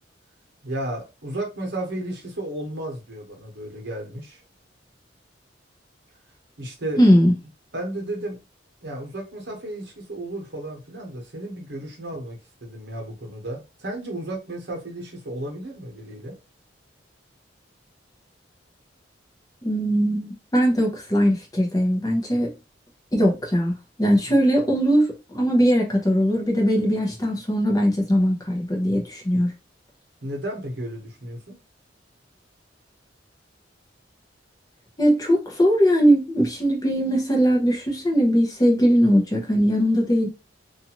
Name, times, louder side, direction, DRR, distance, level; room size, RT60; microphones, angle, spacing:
voice 1, 0.6-4.4 6.6-7.0 7.7-8.4 8.8-16.4 24.3-24.4 30.2-31.6, right 1 dB, 65° right, 1.0 m, -33 dB
voice 2, 7.0-7.3 19.6-22.5 23.1-29.5 35.0-40.3, equal, 20° left, 0.7 m, -20 dB
2.6 x 2.4 x 2.8 m
head